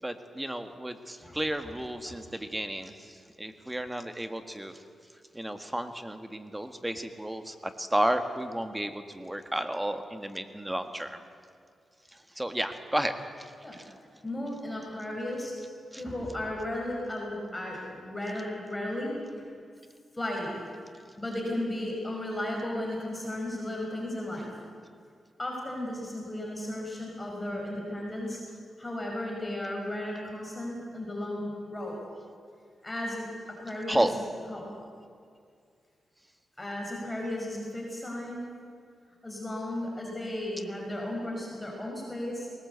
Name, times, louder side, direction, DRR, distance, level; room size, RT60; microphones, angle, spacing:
voice 1, 0.0-4.8 5.3-11.2 12.1-13.5 13.8-13.9 15.9-16.0 33.9-34.1, right 1 dB, 10° right, 8 dB, 1.6 m, -32 dB
voice 2, 14.2-15.5 16.0-19.4 20.1-20.6 21.2-24.5 25.4-28.4 28.8-32.0 32.8-34.1 34.5-34.7 36.6-38.5 39.2-42.5, left 1 dB, 15° left, -2 dB, 5.5 m, -35 dB
20.5 x 19.0 x 8.2 m, 2.2 s
cardioid pair, 80°, 0 cm